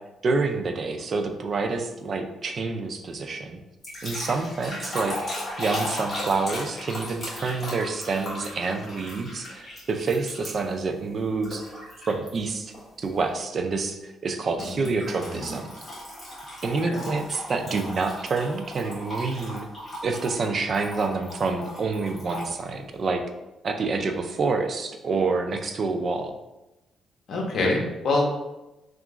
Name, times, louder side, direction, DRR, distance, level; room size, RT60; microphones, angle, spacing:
voice 1, 0.2-3.6 4.0-5.2 5.6-11.8 12.1-15.7 16.6-19.7 20.0-23.2 23.6-26.3, right 4 dB, 35° right, 5 dB, 0.3 m, -27 dB
sound 1, 3.8-10.8 11.4-12.3 12.7-13.0 14.6-22.5, left 1 dB, 20° left, 1.1 m, -37 dB
voice 2, 14.6-15.6 16.9-17.0 27.3-28.2, left 2 dB, 50° left, -1 dB, 0.7 m, -27 dB
2.9 x 2.4 x 3.5 m, 0.98 s
cardioid pair, 160°, 0 cm